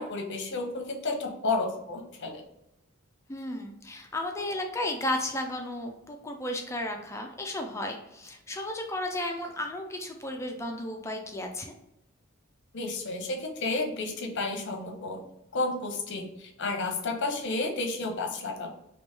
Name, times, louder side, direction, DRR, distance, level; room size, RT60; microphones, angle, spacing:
voice 1, 0.0-2.4 12.7-15.2 15.5-18.7, left 3 dB, 55° left, 2 dB, 0.8 m, -31 dB
voice 2, 3.3-11.7, left 1 dB, 15° left, 3 dB, 0.4 m, -34 dB
3.0 x 3.0 x 3.3 m, 0.88 s
head